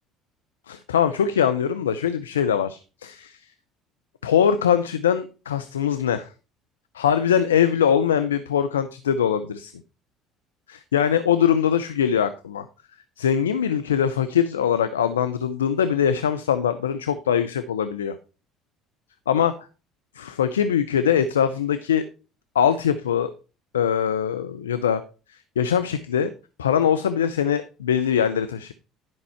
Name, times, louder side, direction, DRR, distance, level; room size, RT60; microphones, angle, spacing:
voice 1, 0.7-3.4 4.2-6.3 6.9-9.7 10.7-12.7 13.2-18.2 19.3-19.5 20.2-22.1 22.5-23.3 23.7-25.0 25.3-26.3 26.6-28.7, left 8 dB, 85° left, 11 dB, 0.5 m, -22 dB
10.5 x 5.4 x 4.5 m, 0.33 s
hypercardioid pair, 60°, 0 cm